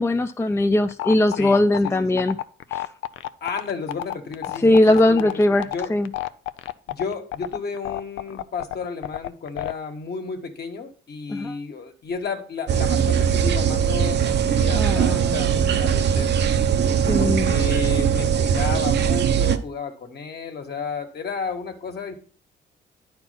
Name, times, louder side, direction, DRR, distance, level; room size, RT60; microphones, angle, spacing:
voice 1, 0.0-2.4 2.7-2.8 4.6-6.1 11.3-11.6 14.8-15.7 17.1-17.6, left 1 dB, 15° left, 8 dB, 0.5 m, -20 dB
sound 1, 0.9-9.7, left 13 dB, 85° left, 0.5 m, -30 dB
voice 2, 1.8-2.3 3.4-5.4 5.7-5.9 6.9-16.4 17.2-22.1, left 5 dB, 55° left, 5 dB, 1.7 m, -32 dB
sound 2, 12.7-19.6, right 8 dB, 60° right, 0.8 m, -20 dB
9.9 x 4.4 x 5.8 m, 0.41 s
cardioid pair, 90°, 20 cm